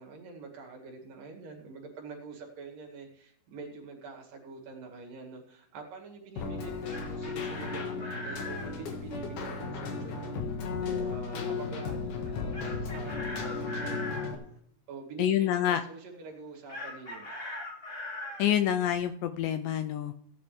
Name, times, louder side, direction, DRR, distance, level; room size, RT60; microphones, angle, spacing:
voice 1, 0.0-10.4 10.8-14.0 14.9-17.3, right 4 dB, 65° right, 1 dB, 3.7 m, -46 dB
Keyboard (musical), 6.4-14.4, left 4 dB, 60° left, 2.8 m, -35 dB
Chicken rooster, 6.6-8.7 12.5-14.3 16.7-18.5, left 2 dB, 15° left, 2.6 m, -40 dB
voice 2, 15.2-15.8 18.4-20.1, left 10 dB, 80° left, 9 dB, 2.0 m, -27 dB
17.0 x 10.0 x 3.3 m, 0.67 s
omnidirectional pair, 4.4 m